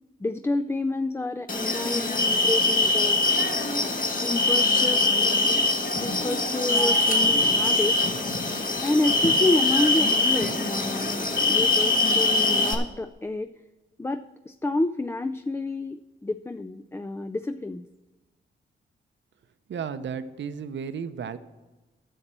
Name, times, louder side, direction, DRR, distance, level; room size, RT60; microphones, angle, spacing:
voice 1, 0.2-3.2 3.8-3.9 4.2-5.1 6.0-8.0 8.8-13.5 14.0-17.8, left 2 dB, 15° left, 8 dB, 0.3 m, -29 dB
sound 1, 1.5-12.7, left 2 dB, 45° left, 1.6 m, -23 dB
voice 2, 19.7-21.4, right 7 dB, 70° right, 11 dB, 0.7 m, -33 dB
9.9 x 6.6 x 7.4 m, 1.1 s
cardioid pair, 90°, 20 cm